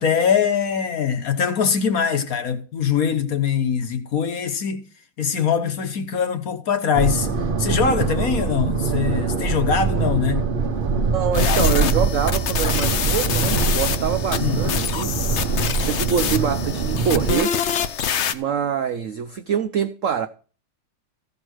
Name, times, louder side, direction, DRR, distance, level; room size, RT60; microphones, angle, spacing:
voice 1, 0.0-4.9 5.2-7.3 7.6-10.4 14.4-14.7, left 7 dB, 55° left, 1.3 m, -22 dB
sound 1, 6.9-17.4, right 4 dB, 40° right, 0.8 m, -23 dB
voice 2, 11.1-15.5 15.8-17.6 18.3-20.3, right 8 dB, 70° right, 0.7 m, -25 dB
sound 2, 11.3-18.3, left 8 dB, 75° left, 0.6 m, -25 dB
15.0 x 5.3 x 6.3 m
omnidirectional pair, 2.1 m